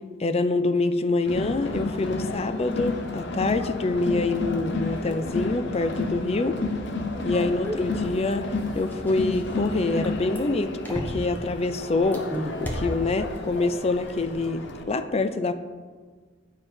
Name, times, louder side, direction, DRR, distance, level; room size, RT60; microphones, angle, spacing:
voice 1, 0.2-6.6 7.2-12.3 12.6-15.5, left 3 dB, 30° left, 10 dB, 0.4 m, -26 dB
Crowd, 1.3-14.8, left 2 dB, 65° left, 0.8 m, -32 dB
sound 1, 7.6-11.5 12.0-13.6 13.9-14.2, equal, 10° left, 1.1 m, -34 dB
9.4 x 5.4 x 4.4 m, 1.5 s
head